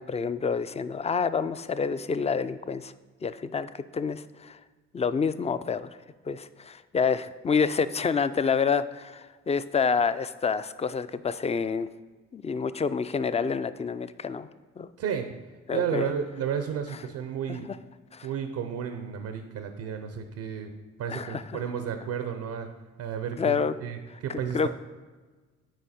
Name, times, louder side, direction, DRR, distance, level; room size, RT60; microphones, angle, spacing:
voice 1, 0.0-2.9 3.2-4.6 4.9-5.9 6.3-11.9 12.3-14.5 14.8-14.9 15.7-16.1 18.1-18.3 21.1-21.4 23.4-23.7 24.5-24.7, left 5 dB, 20° left, 14 dB, 0.4 m, -28 dB
voice 2, 15.0-15.4 15.7-17.7 18.2-20.7 21.0-22.7 23.0-24.7, right 8 dB, 80° right, 7 dB, 0.6 m, -32 dB
9.1 x 4.5 x 4.2 m, 1.3 s
supercardioid pair, 55°, 31 cm